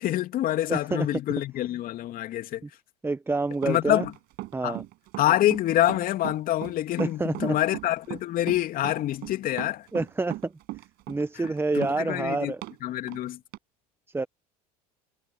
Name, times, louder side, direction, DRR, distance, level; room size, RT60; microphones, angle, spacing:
voice 1, 0.0-2.6 3.6-4.1 4.6-4.8 5.2-9.9 11.7-12.5 12.8-13.4, left 14 dB, 45° left, 3.1 m, -26 dB
voice 2, 0.7-1.1 2.6-2.7 3.0-4.1 4.5-4.8 7.0-7.6 9.9-10.5 11.1-12.6 14.1-14.3, right 3 dB, 10° right, 1.4 m, -28 dB
Run, 3.5-12.8 13.1-13.2 13.5-13.6, right 19 dB, 55° right, 6.5 m, -38 dB
hypercardioid pair, 75°, 19 cm